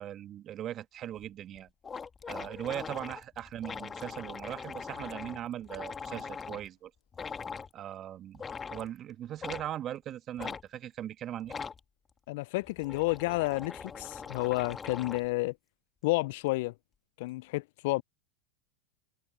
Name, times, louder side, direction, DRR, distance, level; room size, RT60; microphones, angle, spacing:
voice 1, 0.0-1.7 2.3-6.9 7.7-8.4 8.7-11.6, right 11 dB, 40° right, 1.7 m, -39 dB
sound 1, 1.2-1.3 1.6-1.7 1.8-6.7 7.1-7.7 8.3-8.9 9.4-9.7 10.4-10.6 11.4-11.8 12.6-15.3, left 5 dB, 20° left, 2.1 m, -41 dB
voice 2, 12.3-15.5 16.0-16.7 17.2-18.0, left 22 dB, 60° left, 0.5 m, -30 dB
open air
hypercardioid pair, 95°, 0 cm